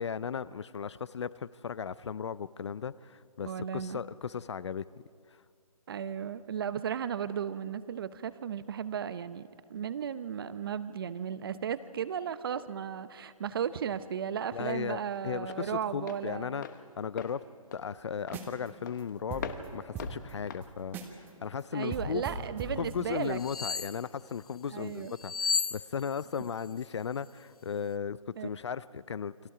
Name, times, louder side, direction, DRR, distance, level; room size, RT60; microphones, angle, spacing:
voice 1, 0.0-4.9 14.5-16.7 17.0-17.4 17.7-19.5 19.7-22.3 22.8-29.3, left 7 dB, 50° left, 19 dB, 0.5 m, -36 dB
voice 2, 3.4-4.0 5.9-16.6 21.7-23.4 24.7-25.1 28.4-28.5, right 8 dB, 40° right, 14 dB, 0.8 m, -35 dB
Walk footsteps, 13.2-21.9, left 7 dB, 30° left, 1.1 m, -46 dB
sound 1, 18.2-18.7 19.0-19.1 19.3-21.3 21.6-21.7 21.9-23.4, right 3 dB, 10° right, 1.4 m, -40 dB
sound 2, 23.3-24.0 25.2-26.4 26.6-26.9, left 5 dB, 90° left, 0.7 m, -33 dB
29.0 x 23.0 x 4.9 m, 2.3 s
hypercardioid pair, 155°, 19 cm